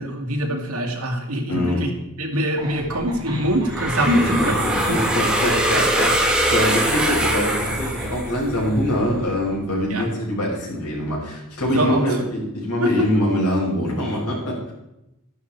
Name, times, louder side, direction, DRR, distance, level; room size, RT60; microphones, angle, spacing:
voice 1, 0.0-1.9 2.2-4.5 4.9-5.1 9.9-10.1 11.7-12.0 12.8-13.1, equal, 80° right, 3 dB, 2.4 m, -23 dB
voice 2, 1.5-1.8 3.9-14.7, equal, 85° left, -3 dB, 6.3 m, -24 dB
sound 1, 2.6-9.7, equal, 20° right, 4.7 m, -35 dB
sound 2, 3.7-8.6, right 1 dB, 5° right, 1.9 m, -22 dB
13.0 x 11.5 x 4.6 m, 0.88 s
head